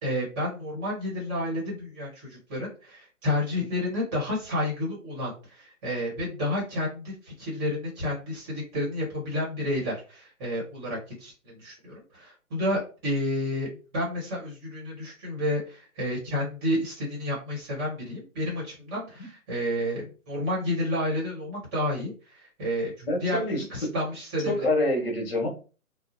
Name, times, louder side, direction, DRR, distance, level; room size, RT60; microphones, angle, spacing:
voice 1, 0.0-13.7 13.9-22.9 23.2-24.7, left 1 dB, 15° right, -4 dB, 1.2 m, -30 dB
voice 2, 23.0-23.6 24.4-25.5, left 1 dB, 40° left, 1 dB, 1.3 m, -26 dB
3.7 x 2.1 x 2.6 m, 0.34 s
figure-of-eight pair, 145°, 44 cm